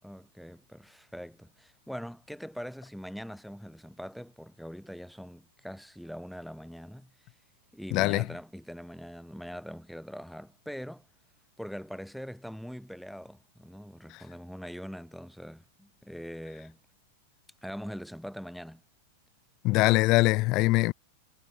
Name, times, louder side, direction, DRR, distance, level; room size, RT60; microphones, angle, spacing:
voice 1, 0.0-7.1 7.7-11.1 11.6-16.8 17.6-18.8, equal, ahead, 3.8 m, -42 dB
voice 2, 7.9-8.3 14.1-14.2 19.6-20.9, left 22 dB, 45° left, 3.4 m, -23 dB
hypercardioid pair, 110°, 0 cm